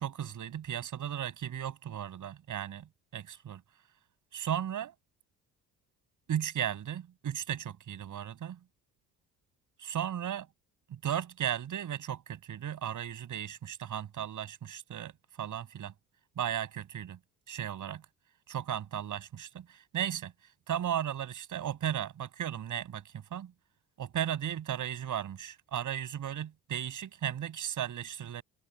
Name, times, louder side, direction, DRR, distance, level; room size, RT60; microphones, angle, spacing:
voice 1, 0.0-2.9 3.1-3.6 4.3-4.9 6.3-8.6 9.8-10.5 10.9-15.1 15.4-15.9 16.4-17.2 17.5-18.0 18.5-20.3 20.7-23.5 24.0-28.4, right 10 dB, 60° right, 6.4 m, -35 dB
supercardioid pair, 70°, 36 cm